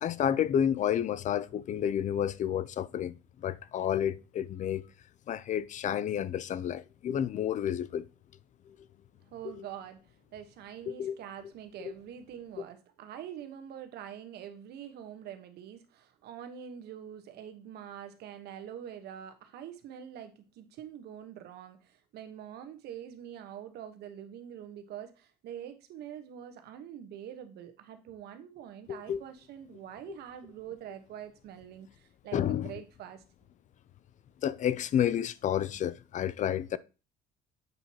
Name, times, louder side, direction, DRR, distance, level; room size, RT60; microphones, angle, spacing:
voice 1, 0.0-4.8 5.3-8.1 9.5-9.6 11.0-11.2 28.9-29.2 32.3-32.7 34.4-36.8, left 9 dB, 45° left, 0.4 m, -30 dB
voice 2, 9.3-33.2, right 9 dB, 75° right, 1.1 m, -45 dB
7.8 x 4.6 x 2.8 m
cardioid pair, 110°, 17 cm